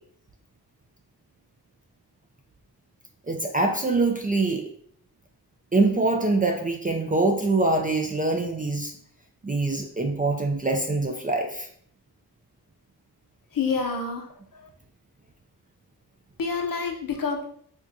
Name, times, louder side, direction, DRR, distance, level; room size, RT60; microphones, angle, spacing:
voice 1, 3.3-4.6 5.7-8.9 9.4-11.7, right 2 dB, 25° right, 3 dB, 0.3 m, -24 dB
voice 2, 13.5-14.7 16.4-17.5, left 5 dB, 55° left, 3 dB, 0.7 m, -28 dB
4.3 x 2.3 x 2.6 m, 0.63 s
wide cardioid pair, 75°, 39 cm